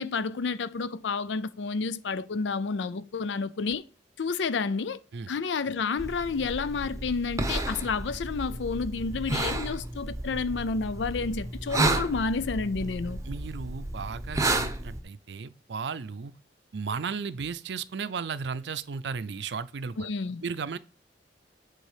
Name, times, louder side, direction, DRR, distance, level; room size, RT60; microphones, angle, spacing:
voice 1, 0.0-3.8 4.2-5.0 5.3-13.2 20.0-20.4, left 4 dB, 85° left, 0.5 m, -30 dB
sound 1, 6.0-15.0, right 2 dB, 20° right, 0.7 m, -32 dB
voice 2, 13.3-16.3 16.7-20.1 20.4-20.8, right 5 dB, 70° right, 0.5 m, -35 dB
8.1 x 3.9 x 4.9 m
head